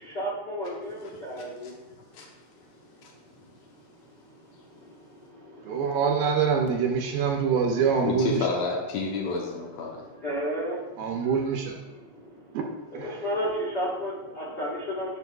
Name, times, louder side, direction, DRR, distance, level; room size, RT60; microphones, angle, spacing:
voice 1, 0.0-1.7 4.5-5.8 9.9-11.0 12.0-12.6 12.9-15.2, equal, 65° left, -8 dB, 1.0 m, -33 dB
voice 2, 5.6-8.6 11.0-11.8 12.5-12.7 12.9-13.3, right 6 dB, 80° right, 1 dB, 2.3 m, -25 dB
voice 3, 8.0-10.0, left 4 dB, 85° left, -1 dB, 1.5 m, -30 dB
10.5 x 5.5 x 2.3 m, 1.1 s
omnidirectional pair, 4.1 m